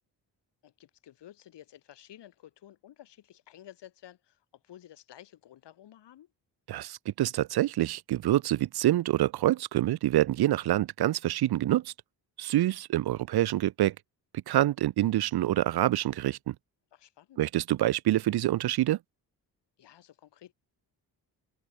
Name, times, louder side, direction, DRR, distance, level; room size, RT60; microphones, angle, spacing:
voice 1, 0.6-6.3 16.9-17.4 19.8-20.5, left 12 dB, 80° left, 4.7 m, -53 dB
voice 2, 6.7-11.9 12.4-13.9 14.5-16.5 17.4-19.0, right 14 dB, 65° right, 0.7 m, -26 dB
cardioid pair, 70°, 41 cm